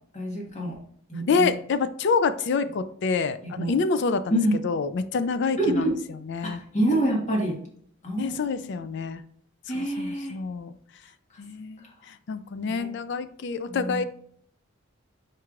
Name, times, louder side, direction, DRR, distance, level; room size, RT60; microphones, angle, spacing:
voice 1, 0.1-0.7 1.1-1.5 3.5-3.7 4.3-4.6 5.6-5.9 6.4-7.6 8.0-8.7 9.7-10.3 12.7-12.9 13.7-14.0, right 1 dB, 35° left, -2 dB, 1.5 m, -26 dB
voice 2, 1.3-4.4 4.6-5.9 6.3-6.6 8.2-9.2 9.7-10.7 11.4-11.8 12.3-14.0, left 4 dB, 60° left, 12 dB, 0.4 m, -27 dB
4.6 x 4.5 x 2.4 m, 0.63 s
head